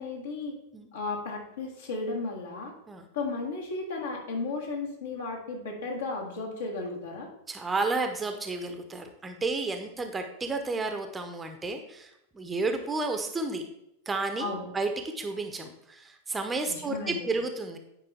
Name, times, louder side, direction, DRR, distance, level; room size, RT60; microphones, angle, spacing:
voice 1, 0.0-0.5 0.9-2.7 3.1-7.3 14.4-14.7 16.7-17.3, left 3 dB, 65° left, -1 dB, 1.8 m, -34 dB
voice 2, 7.5-13.6 14.1-17.8, right 3 dB, 15° right, 6 dB, 0.7 m, -32 dB
9.7 x 5.2 x 3.4 m, 0.81 s
figure-of-eight pair, 90°, 0 cm